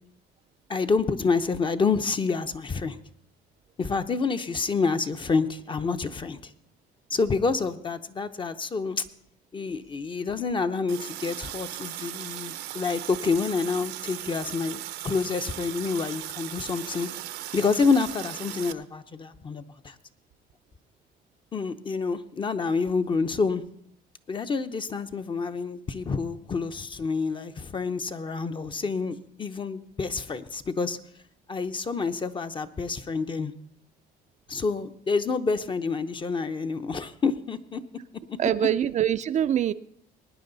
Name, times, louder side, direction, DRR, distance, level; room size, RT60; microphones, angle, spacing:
voice 1, 0.7-3.0 3.8-6.5 7.1-9.0 9.5-17.1 17.5-20.0 21.5-23.6 24.3-31.0 31.5-33.5 34.5-37.8 38.3-38.7, left 4 dB, 30° left, 10 dB, 0.7 m, -28 dB
Water tap faucet, 10.9-18.7, right 14 dB, 80° right, 0.7 m, -38 dB
voice 2, 38.4-39.7, right 10 dB, 45° right, 12 dB, 0.4 m, -24 dB
19.5 x 9.7 x 4.0 m, 0.70 s
cardioid pair, 110°, 17 cm